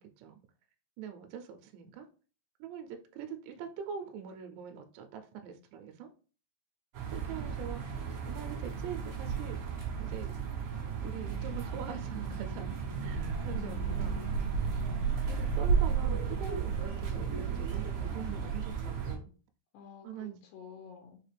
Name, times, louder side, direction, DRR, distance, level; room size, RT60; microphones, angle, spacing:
voice 1, 1.0-2.1 2.6-6.1 7.1-7.8 8.3-9.6 10.0-10.4 11.0-14.2 15.3-19.3 20.0-20.4, right 8 dB, 80° right, 5 dB, 2.6 m, -43 dB
sound 1, 6.9-19.1, right 6 dB, 55° right, 2.2 m, -33 dB
voice 2, 13.8-14.7 19.7-21.2, left 9 dB, 80° left, 0 dB, 2.9 m, -49 dB
6.6 x 2.4 x 3.3 m, 0.38 s
omnidirectional pair, 5.1 m